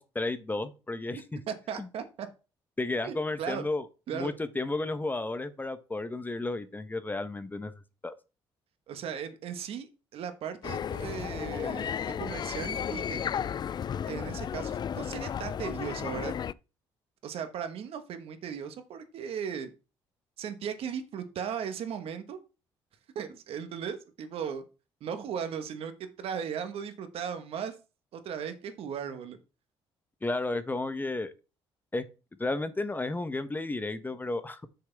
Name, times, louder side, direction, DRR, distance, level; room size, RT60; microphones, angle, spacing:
voice 1, 0.0-1.4 1.8-1.9 2.8-3.9 4.1-7.7 8.0-8.1 30.2-31.3 31.9-32.1 32.4-34.6, left 2 dB, 20° left, 1.0 m, -32 dB
voice 2, 1.5-2.3 3.0-3.6 4.1-4.3 8.9-13.3 14.1-16.3 17.2-19.7 20.4-22.4 23.1-24.6 25.0-25.9 26.2-27.7 28.1-29.4, right 7 dB, 70° right, 1.5 m, -37 dB
sound 1, 10.6-16.5, left 8 dB, 45° left, 0.4 m, -34 dB
8.0 x 6.6 x 3.5 m
supercardioid pair, 80°, 10 cm